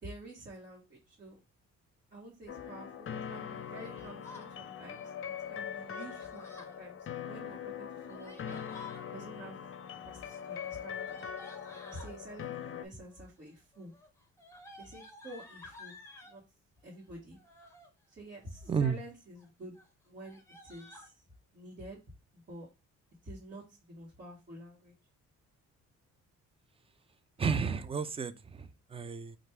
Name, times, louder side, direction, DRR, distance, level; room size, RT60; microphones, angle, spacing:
voice 1, 0.0-1.4 2.1-5.1 5.5-8.6 9.1-9.6 10.0-11.2 11.7-13.9 14.8-16.0 16.2-16.4 16.8-17.4 18.1-19.7 20.1-21.1 21.5-22.0 22.5-22.7 23.2-24.9, right 1 dB, 35° right, 1.5 m, -49 dB
sound 1, 2.5-12.9, left 8 dB, 45° left, 0.6 m, -42 dB
Yell, 3.7-4.5 5.9-6.8 7.9-9.1 10.4-12.2 13.0-13.4 13.7-16.4 17.3-17.9 18.4-19.0 19.4-19.5 19.7-19.9 20.2-21.1, left 3 dB, 10° left, 1.1 m, -53 dB
voice 2, 18.7-19.0 27.4-29.4, right 6 dB, 20° right, 0.4 m, -32 dB
3.3 x 2.5 x 4.4 m
cardioid pair, 90°, 30 cm